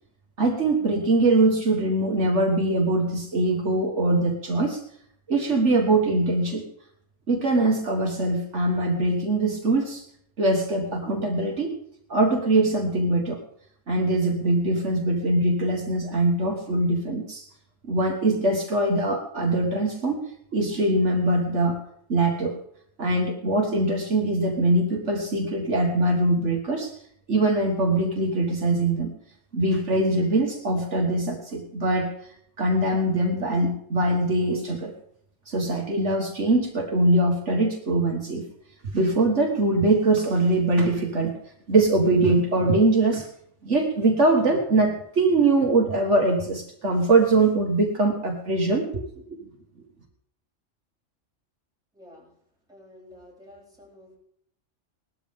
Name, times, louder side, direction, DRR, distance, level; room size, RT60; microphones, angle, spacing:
voice 1, 0.4-4.8 5.3-6.6 7.3-10.0 10.4-11.7 12.1-13.4 13.9-17.4 17.8-21.8 22.1-22.6 23.0-26.9 27.3-29.1 29.5-32.1 32.6-34.9 35.5-38.5 38.9-41.4 41.7-43.3 43.6-49.0, right 2 dB, 65° right, 1 dB, 2.0 m, -22 dB
voice 2, 51.9-52.3 52.7-54.2, left 1 dB, 5° right, -5 dB, 7.9 m, -50 dB
18.5 x 13.0 x 3.7 m, 0.70 s
omnidirectional pair, 1.3 m